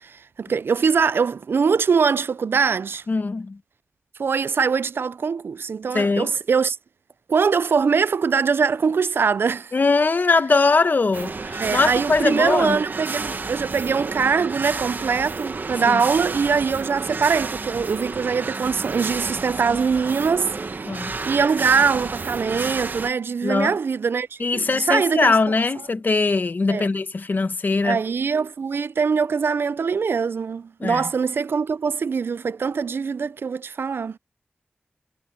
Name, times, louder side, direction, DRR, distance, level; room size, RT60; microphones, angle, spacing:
voice 1, 0.0-3.0 4.2-6.8 7.3-9.7 11.6-20.6 21.3-25.4 26.7-26.9 27.8-34.2, right 5 dB, 75° right, 0.3 m, -22 dB
voice 2, 3.1-3.6 5.9-6.3 9.7-12.8 15.9-16.0 20.9-21.1 23.4-23.7 24.4-28.0 30.8-31.1, left 3 dB, 55° left, 1.0 m, -21 dB
sound 1, 11.1-23.1, right 3 dB, 55° right, 1.0 m, -31 dB
wide cardioid pair, 85°, 4 cm